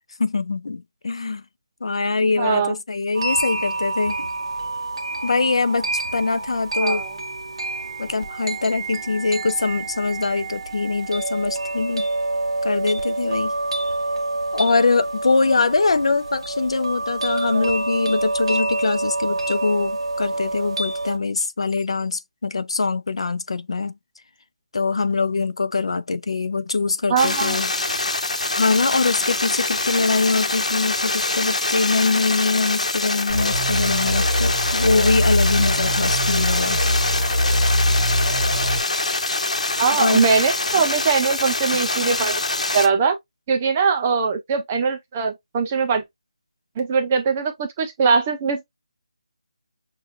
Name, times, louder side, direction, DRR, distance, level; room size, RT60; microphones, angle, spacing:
voice 1, 0.2-1.4 1.8-4.3 5.2-7.0 8.0-12.1 12.6-13.5 14.5-23.9 24.7-27.7 28.5-36.8 39.9-40.3, left 4 dB, 55° left, 0.6 m, -23 dB
voice 2, 2.2-2.8 6.8-7.1 17.5-17.7 27.1-27.6 39.8-42.4 42.7-43.2 43.5-46.0 46.8-48.6, right 5 dB, 10° right, 0.3 m, -21 dB
sound 1, 3.1-21.2, right 2 dB, 50° right, 0.8 m, -27 dB
sound 2, 27.2-42.9, left 2 dB, 85° left, 1.1 m, -24 dB
sound 3, 33.3-38.8, equal, 20° left, 1.3 m, -22 dB
6.5 x 2.4 x 2.4 m
figure-of-eight pair, 175°, 4 cm